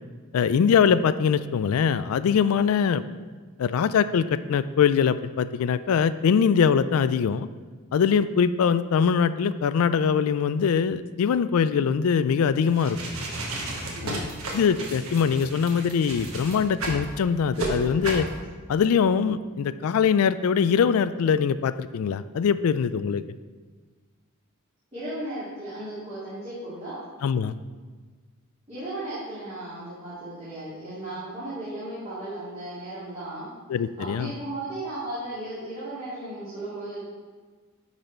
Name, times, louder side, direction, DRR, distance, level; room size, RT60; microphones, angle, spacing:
voice 1, 0.3-3.0 3.6-7.5 7.9-13.0 14.0-18.3 18.7-23.2 27.2-27.5 33.7-34.3, left 7 dB, 80° left, 13 dB, 0.3 m, -22 dB
sound 1, 12.7-17.0 17.5-17.7 18.0-18.3, right 2 dB, 75° right, 1.4 m, -33 dB
voice 2, 24.9-27.0 28.7-33.5 34.0-37.0, right 1 dB, 30° right, -11 dB, 2.2 m, -35 dB
10.5 x 4.1 x 4.4 m, 1.4 s
head